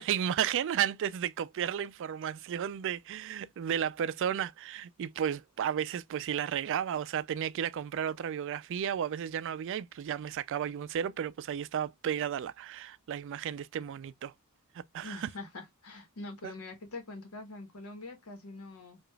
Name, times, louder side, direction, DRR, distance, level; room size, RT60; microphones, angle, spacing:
voice 1, 0.0-14.3 14.9-15.3 16.4-16.5, right 9 dB, 60° right, 0.3 m, -33 dB
voice 2, 15.0-19.0, left 2 dB, 90° left, 1.2 m, -44 dB
4.9 x 2.4 x 2.2 m
head